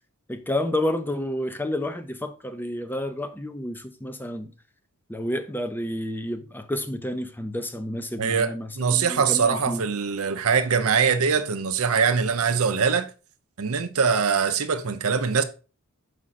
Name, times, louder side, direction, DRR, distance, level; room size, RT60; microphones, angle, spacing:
voice 1, 0.3-4.5 5.1-9.9, left 1 dB, 10° left, 0.6 m, -30 dB
voice 2, 8.2-13.1 13.6-15.4, right 6 dB, 70° right, 0.7 m, -23 dB
6.2 x 5.0 x 4.2 m
head